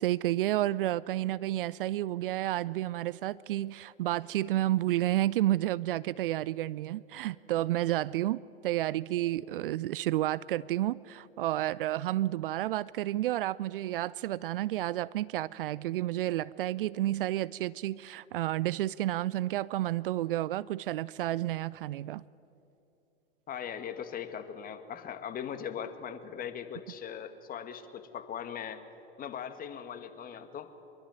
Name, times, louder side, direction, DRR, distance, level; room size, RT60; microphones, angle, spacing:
voice 1, 0.0-22.2, right 14 dB, 60° right, 21 dB, 0.6 m, -31 dB
voice 2, 23.5-28.8 29.2-30.7, left 8 dB, 25° left, 9 dB, 2.0 m, -40 dB
24.5 x 22.5 x 9.3 m, 2.9 s
figure-of-eight pair, 90°, 31 cm